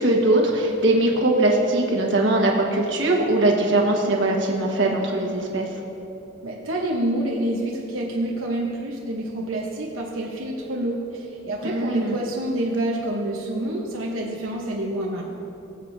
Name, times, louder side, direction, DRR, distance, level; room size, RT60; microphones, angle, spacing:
voice 1, 0.0-5.7 11.6-12.2, right 2 dB, 65° right, 0 dB, 1.3 m, -21 dB
voice 2, 6.4-15.2, right 1 dB, 85° right, -2 dB, 1.0 m, -27 dB
20.0 x 7.6 x 2.7 m, 2.9 s
head